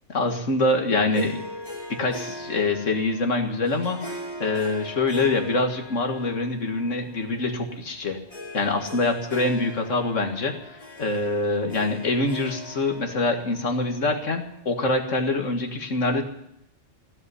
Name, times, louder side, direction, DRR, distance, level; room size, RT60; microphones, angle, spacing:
voice 1, 0.1-1.4 1.9-8.2 8.5-16.2, left 2 dB, 85° left, 4 dB, 2.2 m, -25 dB
Harp, 1.1-14.8, left 1 dB, 25° left, 3.2 m, -40 dB
16.0 x 8.7 x 9.7 m, 0.76 s
omnidirectional pair, 1.2 m